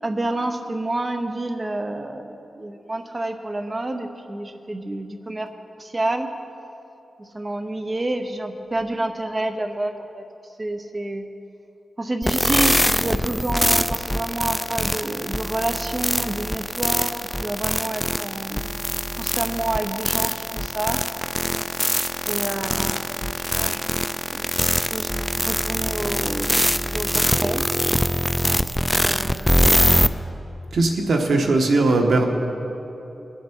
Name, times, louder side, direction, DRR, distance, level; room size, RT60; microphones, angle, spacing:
voice 1, 0.0-5.5 5.8-6.3 7.2-10.2 10.6-11.2 12.0-18.6 19.2-21.0 22.3-23.0 23.4-26.6 26.9-27.6 29.0-30.0 31.4-31.5, right 2 dB, 25° right, 5 dB, 0.8 m, -29 dB
sound 1, 12.2-30.1, equal, 5° left, 0.3 m, -23 dB
voice 2, 30.7-32.2, right 2 dB, 90° right, 2 dB, 1.3 m, -19 dB
20.0 x 7.2 x 4.5 m, 2.9 s
wide cardioid pair, 130°, 0 cm